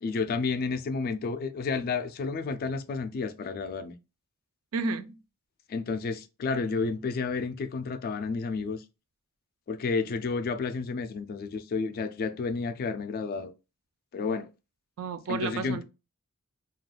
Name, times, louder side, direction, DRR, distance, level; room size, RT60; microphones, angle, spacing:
voice 1, 0.0-3.9 5.7-8.8 9.7-13.5 14.1-14.5 15.3-15.8, left 4 dB, 45° left, 0.3 m, -31 dB
voice 2, 4.7-5.2 15.0-15.8, right 4 dB, 70° right, 0.4 m, -31 dB
2.3 x 2.2 x 3.2 m
head